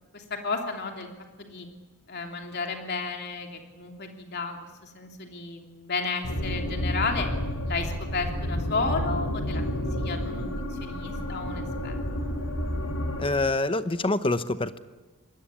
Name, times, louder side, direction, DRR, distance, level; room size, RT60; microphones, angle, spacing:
voice 1, 0.1-1.1 1.4-1.7 2.1-4.6 4.8-7.3 7.6-10.5 10.8-12.0, left 4 dB, 50° left, 3 dB, 3.1 m, -32 dB
sound 1, 6.2-13.2, equal, 85° left, 4.8 m, -30 dB
voice 2, 13.2-14.8, left 2 dB, 25° left, 12 dB, 0.8 m, -26 dB
26.0 x 20.0 x 8.6 m, 1.2 s
head